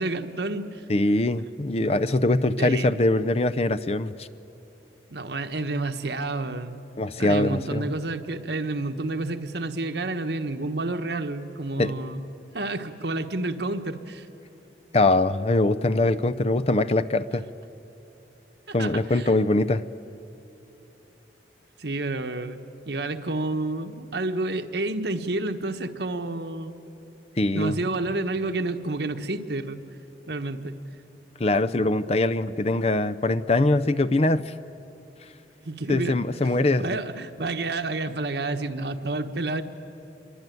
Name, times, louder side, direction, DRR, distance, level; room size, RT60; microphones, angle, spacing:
voice 1, 0.0-0.8 2.6-2.9 5.1-6.8 7.2-12.2 12.5-14.3 18.7-19.3 21.8-22.6 22.9-26.8 27.5-29.8 30.3-30.8 35.6-36.2 36.4-39.6, right 2 dB, 70° right, 7 dB, 1.3 m, -29 dB
voice 2, 0.9-4.3 7.0-7.9 11.8-11.9 14.9-17.4 18.7-19.8 27.4-27.8 31.4-34.5 35.9-37.0, left 2 dB, 35° left, 15 dB, 0.6 m, -22 dB
26.5 x 23.0 x 9.4 m, 2.9 s
head